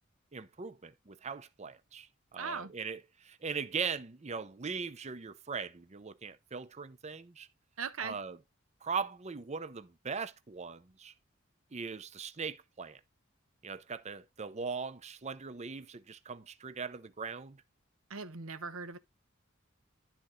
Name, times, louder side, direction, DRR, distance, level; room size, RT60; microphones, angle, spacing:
voice 1, 0.3-7.5 8.0-8.4 8.8-11.1 11.7-13.0 13.6-17.6, right 5 dB, 35° right, 0.6 m, -40 dB
voice 2, 2.4-2.7 7.8-8.2 18.1-19.0, right 5 dB, 90° right, 1.0 m, -39 dB
12.0 x 4.4 x 3.8 m
head